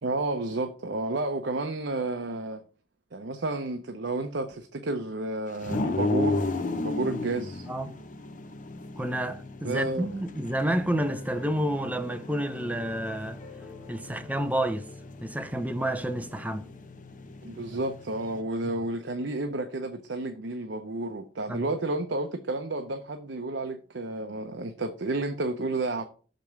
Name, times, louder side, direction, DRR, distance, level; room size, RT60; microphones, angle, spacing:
voice 1, 0.0-2.6 3.1-7.7 9.6-10.1 17.4-26.0, right 2 dB, 70° right, 0.8 m, -31 dB
sound 1, 5.6-18.4, left 2 dB, 45° left, 0.9 m, -35 dB
voice 2, 9.0-13.4 13.9-14.9 15.2-16.7 21.5-21.7, right 1 dB, 10° right, 0.7 m, -29 dB
sound 2, 11.0-20.2, left 3 dB, 20° left, 1.6 m, -52 dB
6.5 x 5.3 x 5.9 m
head